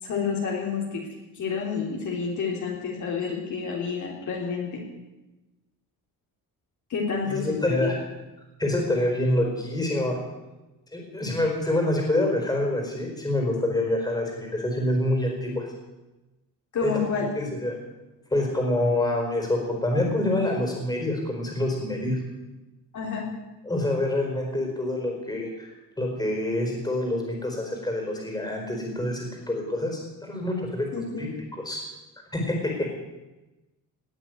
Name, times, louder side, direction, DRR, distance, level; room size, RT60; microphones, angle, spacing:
voice 1, 0.0-1.0 1.3-4.8 6.9-7.9 16.7-17.3 22.9-23.3 30.9-31.2, left 5 dB, 55° left, -2 dB, 3.5 m, -29 dB
voice 2, 7.3-8.0 8.6-10.2 10.9-15.7 16.8-17.0 17.3-17.7 18.3-22.2 23.6-25.7 26.0-31.3 31.6-31.8 32.3-32.9, left 1 dB, 10° left, 1 dB, 4.5 m, -26 dB
19.0 x 8.0 x 9.5 m, 1.1 s
cardioid pair, 155°, 36 cm